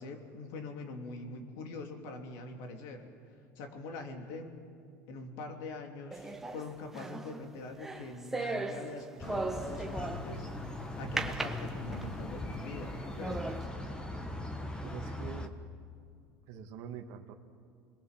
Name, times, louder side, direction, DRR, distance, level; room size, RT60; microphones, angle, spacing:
voice 1, 0.0-3.1 3.5-4.6 5.1-10.5 11.0-13.5, left 3 dB, 70° left, 4 dB, 3.0 m, -43 dB
sound 1, 6.1-10.5 11.2-12.3 12.8-12.9 13.2-13.7, right 2 dB, 5° right, 1.1 m, -38 dB
sound 2, 9.2-15.5, left 1 dB, 15° left, 1.2 m, -40 dB
voice 2, 14.8-15.5 16.5-17.3, right 9 dB, 60° right, 4 dB, 1.8 m, -45 dB
28.5 x 21.5 x 7.4 m, 2.3 s
cardioid pair, 150°, 6 cm